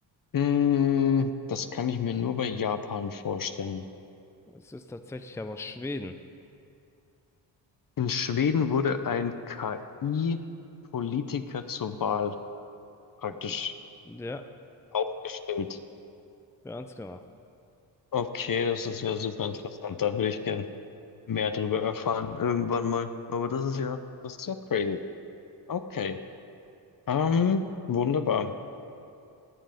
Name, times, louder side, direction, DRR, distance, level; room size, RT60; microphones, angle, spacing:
voice 1, 0.3-3.8 8.0-10.4 10.9-12.3 13.2-13.7 14.9-15.8 18.1-20.7 21.3-25.0 25.7-26.2 27.1-28.5, left 7 dB, 45° left, 10 dB, 0.8 m, -28 dB
voice 2, 4.5-6.2 13.5-13.6 14.1-14.4 16.6-17.2, left 2 dB, 5° left, 8 dB, 0.6 m, -38 dB
19.5 x 7.4 x 5.2 m, 2.6 s
supercardioid pair, 45°, 48 cm